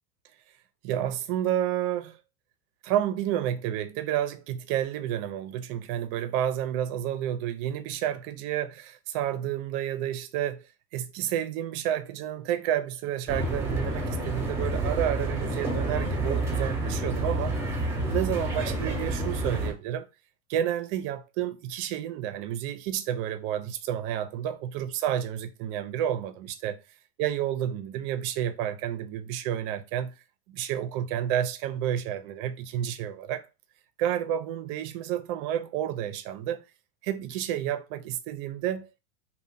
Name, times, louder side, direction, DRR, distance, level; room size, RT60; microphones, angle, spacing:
voice 1, 0.8-2.2 2.8-10.6 10.9-17.5 18.1-20.1 20.5-26.8 27.2-30.1 30.5-33.5 34.0-36.6 37.0-39.0, right 11 dB, 50° right, 0.5 m, -30 dB
sound 1, 13.3-19.7, right 2 dB, 5° right, 0.8 m, -29 dB
2.6 x 2.1 x 3.5 m
supercardioid pair, 130°, 38 cm